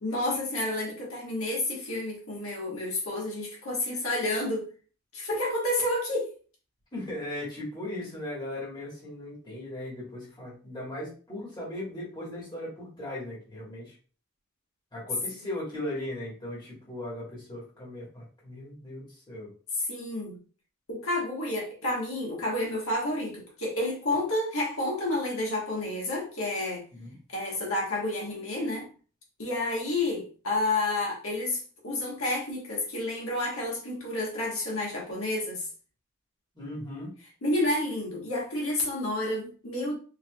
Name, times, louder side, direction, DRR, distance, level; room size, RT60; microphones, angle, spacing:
voice 1, 0.0-4.7 5.1-6.3 19.9-20.4 20.9-26.8 27.3-28.9 29.4-35.7 37.4-39.9, left 1 dB, 85° left, 1.4 m, -30 dB
voice 2, 6.9-13.9 14.9-19.5 26.9-27.1 36.5-37.1, left 1 dB, 20° left, 1.5 m, -38 dB
4.6 x 2.8 x 2.3 m
head